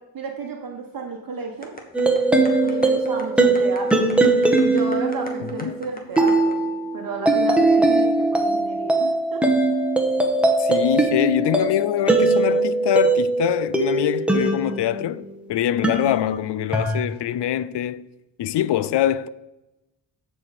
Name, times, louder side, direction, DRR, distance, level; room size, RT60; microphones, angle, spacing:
voice 1, 0.1-1.8 2.6-4.1 4.6-9.4 9.7-9.9, right 4 dB, 50° right, 1.2 m, -32 dB
sound 1, 1.6-6.5, left 1 dB, 20° left, 1.4 m, -37 dB
sound 2, 1.9-15.3 15.8-17.0, right 2 dB, ahead, 1.1 m, -20 dB
voice 2, 10.6-18.1 18.4-19.3, left 11 dB, 65° left, 0.5 m, -24 dB
14.5 x 5.1 x 4.1 m
wide cardioid pair, 130°, 45 cm